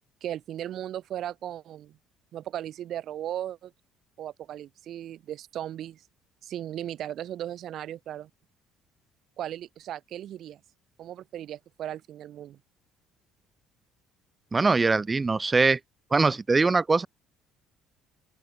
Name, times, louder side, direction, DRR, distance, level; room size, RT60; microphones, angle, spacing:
voice 1, 0.2-2.0 2.3-3.7 4.2-6.0 6.4-8.3 9.4-10.6 11.0-12.6, right 11 dB, 45° right, 6.8 m, -36 dB
voice 2, 14.5-15.8 16.1-17.1, right 3 dB, 15° right, 1.6 m, -22 dB
open air
cardioid pair, 160°, 0 cm